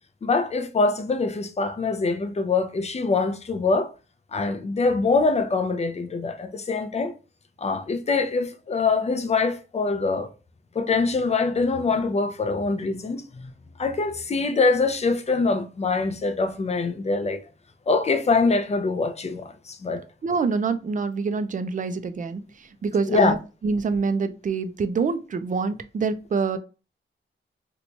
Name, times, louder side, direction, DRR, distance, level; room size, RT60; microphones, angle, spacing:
voice 1, 0.2-3.9 4.3-7.1 7.6-10.3 10.8-13.5 13.8-17.4 17.9-20.0 23.1-23.3, left 4 dB, 30° left, 0.5 m, -24 dB
voice 2, 20.2-23.4 23.6-26.6, right 4 dB, 40° right, 0.4 m, -26 dB
2.9 x 2.2 x 3.9 m
wide cardioid pair, 125°, 21 cm